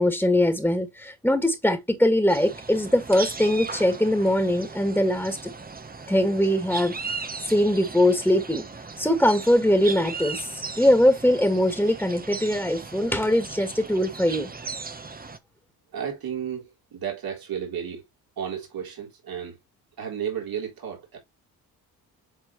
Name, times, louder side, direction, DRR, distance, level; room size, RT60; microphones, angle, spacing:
voice 1, 0.0-5.5 6.1-6.9 7.5-8.6 9.0-14.5, left 1 dB, 5° left, 1.8 m, -22 dB
sound 1, 2.3-15.4, right 4 dB, 25° right, 1.0 m, -37 dB
voice 2, 15.9-18.0 18.4-19.6 20.0-21.2, right 8 dB, 70° right, 3.6 m, -33 dB
9.2 x 4.2 x 3.1 m
cardioid pair, 65°, 38 cm